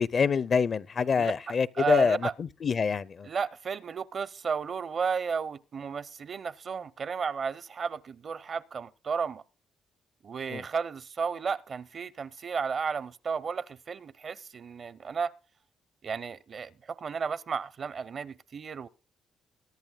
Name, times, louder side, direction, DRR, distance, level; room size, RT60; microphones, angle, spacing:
voice 1, 0.0-3.3 10.5-10.6, left 5 dB, 45° left, 0.5 m, -26 dB
voice 2, 1.2-2.3 3.2-9.4 10.2-15.3 16.0-18.9, right 6 dB, 50° right, 0.6 m, -33 dB
22.5 x 10.5 x 2.3 m
cardioid pair, 90°, 0 cm